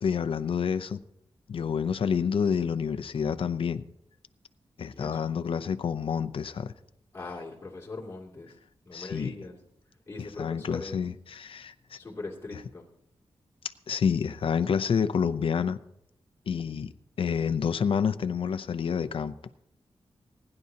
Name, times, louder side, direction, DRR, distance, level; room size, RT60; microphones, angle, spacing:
voice 1, 0.0-1.0 1.5-3.9 4.8-6.7 8.9-9.3 10.4-12.0 12.5-12.6 13.9-15.8 16.5-16.9 17.2-19.3, left 7 dB, 65° left, 0.6 m, -28 dB
voice 2, 7.1-8.5 8.9-9.6 10.1-11.0 12.0-12.9, left 3 dB, 25° left, 2.7 m, -40 dB
28.0 x 10.5 x 2.8 m
wide cardioid pair, 175°, 10 cm